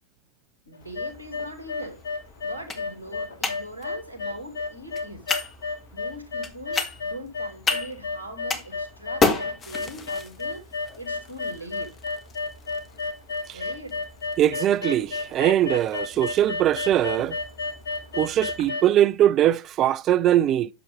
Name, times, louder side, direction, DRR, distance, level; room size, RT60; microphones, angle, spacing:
voice 1, 0.7-2.0 2.4-5.3 5.9-11.9 13.5-14.0, equal, 85° left, 2.2 m, -41 dB
sound 1, 0.7-18.9, left 3 dB, 65° left, 2.0 m, -31 dB
sound 2, 0.8-18.7, left 4 dB, 25° left, 1.4 m, -34 dB
voice 2, 14.4-17.4 18.1-20.7, right 12 dB, 30° right, 0.4 m, -21 dB
8.6 x 6.8 x 3.5 m
figure-of-eight pair, 90°, 0 cm